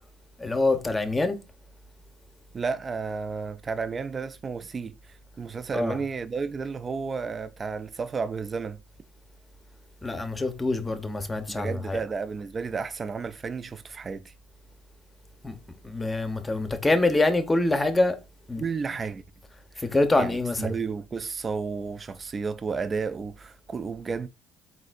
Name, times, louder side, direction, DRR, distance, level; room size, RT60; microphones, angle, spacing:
voice 1, 0.4-1.4 5.7-6.0 10.0-12.0 15.4-15.5 15.8-18.2 18.5-18.6 19.8-20.7, left 2 dB, 20° left, 0.8 m, -25 dB
voice 2, 2.5-8.8 11.5-14.3 18.6-19.2 19.8-19.9 20.2-24.3, right 5 dB, 35° right, 0.3 m, -32 dB
4.0 x 3.8 x 2.5 m
hypercardioid pair, 65°, 0 cm